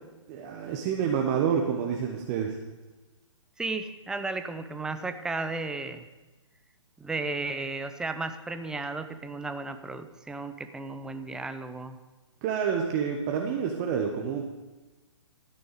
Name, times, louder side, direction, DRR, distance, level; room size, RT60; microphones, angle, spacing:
voice 1, 0.3-2.6 12.4-14.5, right 7 dB, 30° right, 2 dB, 1.1 m, -28 dB
voice 2, 3.6-6.1 7.0-12.0, right 3 dB, 5° right, 9 dB, 0.4 m, -34 dB
13.0 x 9.6 x 5.1 m, 1.2 s
figure-of-eight pair, 125°, 16 cm